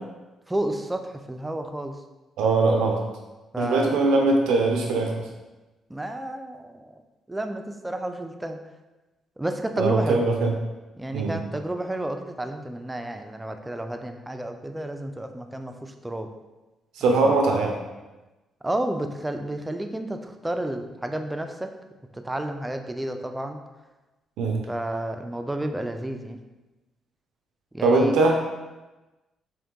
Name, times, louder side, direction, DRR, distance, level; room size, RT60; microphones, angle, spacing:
voice 1, 0.5-2.0 3.5-4.1 5.9-6.9 7.3-8.6 9.4-10.2 11.0-16.3 17.0-17.3 18.6-21.7 22.1-23.6 24.7-26.4 27.7-28.1, right 1 dB, 10° right, 6 dB, 0.3 m, -31 dB
voice 2, 2.4-3.0 3.6-5.2 9.8-10.5 11.1-11.4 17.0-17.8 24.4-24.6 27.8-28.4, right 3 dB, 90° right, 1 dB, 0.4 m, -21 dB
3.8 x 2.6 x 3.6 m, 1.1 s
cardioid pair, 90°, 0 cm